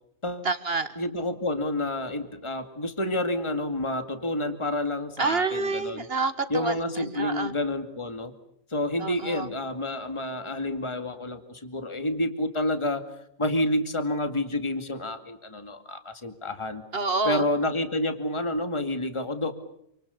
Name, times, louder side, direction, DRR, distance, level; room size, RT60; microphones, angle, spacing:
voice 1, 0.4-0.9 5.2-7.5 9.0-9.5 16.9-17.5, right 4 dB, 45° right, 11 dB, 2.2 m, -28 dB
voice 2, 1.0-6.1 6.5-8.3 8.7-13.0 13.4-16.8 17.2-19.5, left 1 dB, 20° left, 8 dB, 2.3 m, -29 dB
28.5 x 26.5 x 7.0 m, 0.73 s
omnidirectional pair, 1.4 m